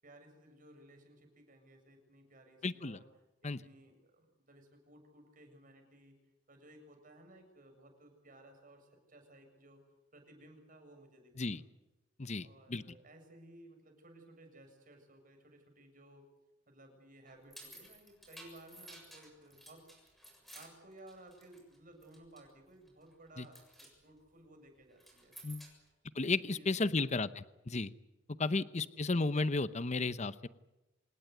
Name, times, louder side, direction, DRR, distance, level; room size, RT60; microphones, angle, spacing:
voice 1, 0.0-3.1 3.4-6.2 6.5-9.8 10.1-11.5 12.4-16.3 16.7-19.9 20.5-25.4 26.2-27.5 28.5-28.9, right 1 dB, 45° right, 4 dB, 7.5 m, -58 dB
voice 2, 2.6-3.0 3.4-3.6 11.4-11.6 12.2-12.8 23.4-23.5 25.4-25.7 26.1-27.9 28.4-30.5, left 3 dB, 40° left, 14 dB, 0.8 m, -33 dB
sound 1, 17.3-21.8 22.0-22.5 22.9-23.1 23.4-23.9 24.9-25.9, right 1 dB, ahead, 7.2 m, -54 dB
27.0 x 19.5 x 8.1 m, 0.98 s
head